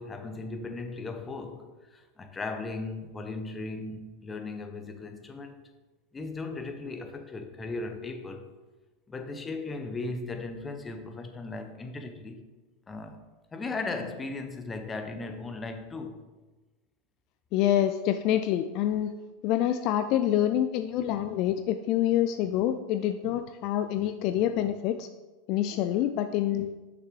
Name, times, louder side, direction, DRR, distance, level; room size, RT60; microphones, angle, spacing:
voice 1, 0.0-5.7 6.1-8.5 9.1-12.5 12.9-13.2 13.5-16.2, left 3 dB, 15° left, 0.7 m, -37 dB
voice 2, 17.5-19.1 19.4-25.1 25.5-26.8, left 11 dB, 50° left, 0.3 m, -26 dB
6.3 x 5.9 x 3.2 m
supercardioid pair, 130°, 0 cm